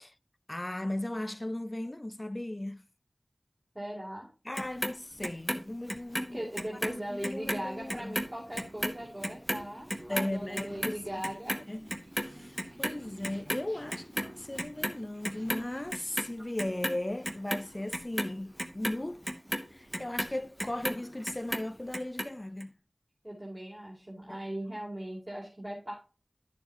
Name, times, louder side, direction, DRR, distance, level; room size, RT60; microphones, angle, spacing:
voice 1, 0.5-2.8 4.5-6.4 6.8-8.2 10.1-11.0 11.7-11.9 12.2-19.2 19.7-22.7 24.3-24.8, left 1 dB, 30° left, 0.4 m, -37 dB
voice 2, 3.7-4.3 6.3-11.6 23.2-25.9, right 1 dB, 30° right, 2.6 m, -39 dB
Clock, 4.6-7.0 7.2-13.6 13.9-15.0 15.2-16.3 16.6-21.0 21.3-22.3 22.6-22.7, equal, 5° right, 0.8 m, -34 dB
Purr, 5.1-22.7, right 1 dB, 60° right, 2.5 m, -55 dB
10.0 x 6.9 x 2.7 m
wide cardioid pair, 45°, 0 cm